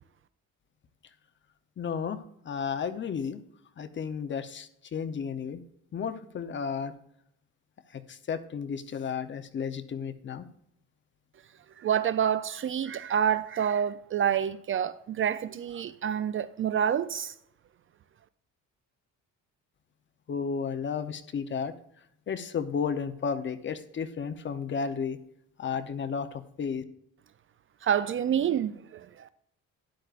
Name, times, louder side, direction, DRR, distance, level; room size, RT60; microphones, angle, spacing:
voice 1, 1.8-3.4 3.8-5.6 5.9-6.9 7.9-10.5 20.3-21.7 22.3-25.2 25.6-26.8, left 6 dB, 35° left, 0.8 m, -33 dB
voice 2, 11.8-17.3 27.8-29.3, right 9 dB, 40° right, 0.4 m, -28 dB
12.5 x 10.5 x 2.5 m
cardioid pair, 135°, 33 cm